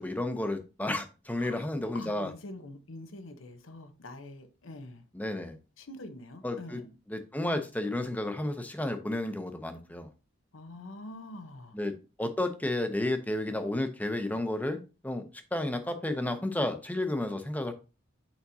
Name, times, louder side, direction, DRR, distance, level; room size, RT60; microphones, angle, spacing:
voice 1, 0.0-2.3 5.1-5.6 6.4-6.8 7.1-10.1 11.7-11.9 12.2-15.2 15.5-17.7, left 1 dB, 10° left, 0.7 m, -32 dB
voice 2, 1.9-5.0 5.8-6.9 10.5-11.8, left 2 dB, 90° left, 0.9 m, -45 dB
7.1 x 5.0 x 2.7 m
head